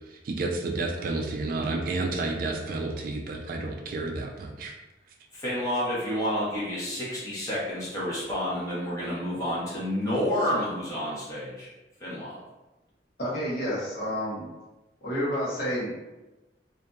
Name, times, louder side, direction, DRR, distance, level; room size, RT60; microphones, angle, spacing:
voice 1, 0.1-4.7, right 3 dB, 50° right, 1 dB, 0.3 m, -31 dB
voice 2, 5.3-11.7 12.0-12.4, equal, 20° left, -8 dB, 0.9 m, -29 dB
voice 3, 13.2-14.5 15.0-16.0, equal, 60° left, -7 dB, 1.0 m, -29 dB
2.6 x 2.5 x 2.3 m, 1.1 s
head